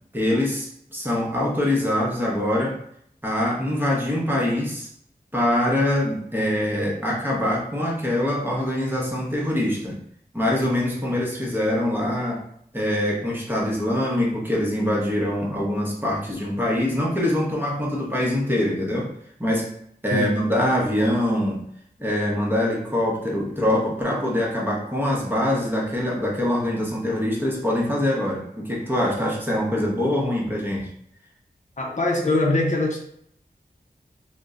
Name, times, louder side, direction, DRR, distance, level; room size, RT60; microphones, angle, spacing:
voice 1, 0.1-2.8 3.2-4.9 5.3-10.0 10.3-12.4 12.7-19.1 19.4-19.7 20.0-21.6 22.0-30.9, left 1 dB, 10° right, -4 dB, 0.9 m, -24 dB
voice 2, 31.8-33.0, left 2 dB, 45° left, -1 dB, 0.6 m, -22 dB
2.6 x 2.1 x 3.5 m, 0.70 s
wide cardioid pair, 70°, 17 cm